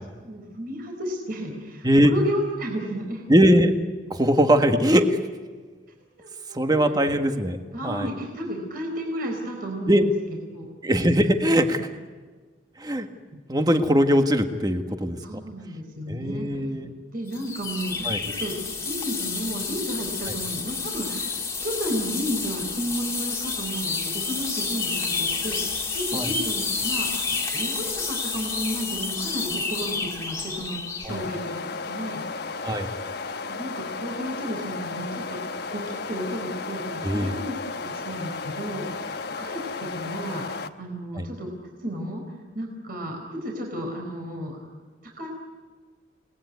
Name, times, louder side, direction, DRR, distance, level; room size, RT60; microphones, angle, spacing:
voice 1, 0.2-3.3 6.2-7.0 7.7-10.1 10.5-10.7 15.2-16.6 17.1-21.3 21.6-32.2 33.5-42.2 42.5-44.6 45.0-45.3, equal, 50° right, 1 dB, 4.3 m, -33 dB
voice 2, 3.3-3.7 4.1-5.2 6.5-8.1 9.9-10.1 10.8-11.9 12.8-13.1 13.5-15.2 16.1-16.9 18.0-18.2 26.1-26.3 31.0-31.2 32.6-32.9 37.0-37.3 39.4-39.5 41.1-41.3, equal, 20° right, 6 dB, 1.6 m, -21 dB
sound 1, 17.3-31.2, left 4 dB, 15° left, 2.2 m, -29 dB
sound 2, 31.0-40.7, left 4 dB, 60° left, 1.2 m, -34 dB
29.0 x 19.5 x 9.6 m, 1.4 s
head